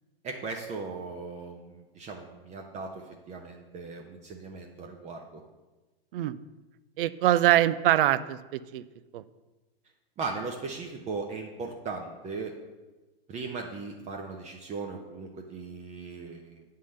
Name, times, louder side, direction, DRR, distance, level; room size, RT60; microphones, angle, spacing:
voice 1, 0.2-5.4 10.2-12.5 13.3-16.6, right 4 dB, 20° right, 2 dB, 0.6 m, -38 dB
voice 2, 7.0-8.8 9.1-9.2, right 13 dB, 60° right, 15 dB, 0.5 m, -24 dB
8.5 x 3.8 x 6.3 m, 1.2 s
hypercardioid pair, 115°, 31 cm